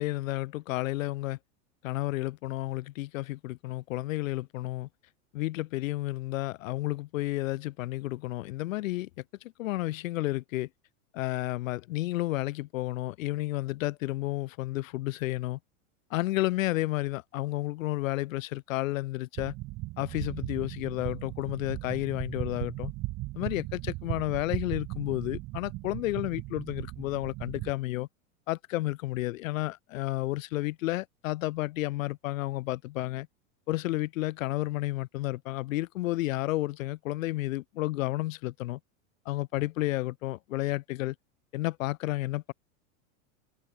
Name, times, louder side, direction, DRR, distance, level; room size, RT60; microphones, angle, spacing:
voice 1, 0.0-1.4 1.8-4.9 5.3-9.1 9.6-10.7 11.1-15.6 16.1-19.5 20.0-22.9 23.3-28.1 28.5-33.3 33.7-38.8 39.2-41.1 41.5-42.5, left 17 dB, 70° left, 1.7 m, -31 dB
sound 1, 19.4-27.7, right 21 dB, 25° right, 0.4 m, -37 dB
open air
supercardioid pair, 125°, 41 cm